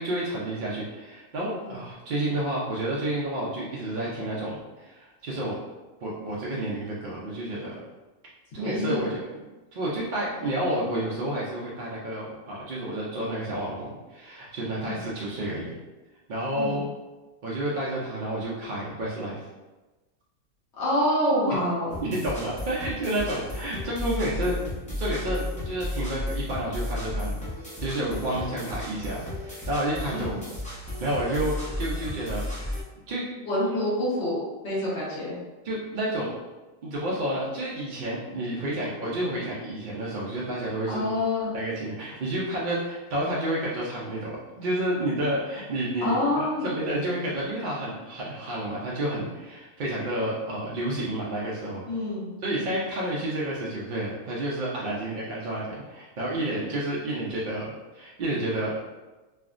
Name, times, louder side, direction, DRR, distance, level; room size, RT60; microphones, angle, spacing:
voice 1, 0.0-5.5 6.0-7.8 8.5-9.2 9.7-15.8 16.3-16.9 17.4-19.4 21.5-21.6 22.0-24.6 24.9-27.4 27.8-30.4 31.0-32.4 33.1-33.3 33.7-33.8 35.6-36.3 36.8-41.0 41.5-51.8 52.4-58.8, right 1 dB, 65° right, -5 dB, 0.5 m, -30 dB
voice 2, 8.6-9.0 14.8-15.0 16.5-16.8 20.8-21.9 30.1-30.4 33.4-35.4 40.9-41.5 46.0-46.7 51.9-52.7, left 1 dB, 60° left, -9 dB, 1.3 m, -27 dB
sound 1, 21.9-32.8, left 1 dB, 10° left, 0.3 m, -34 dB
3.2 x 2.1 x 2.4 m, 1.2 s
omnidirectional pair, 1.4 m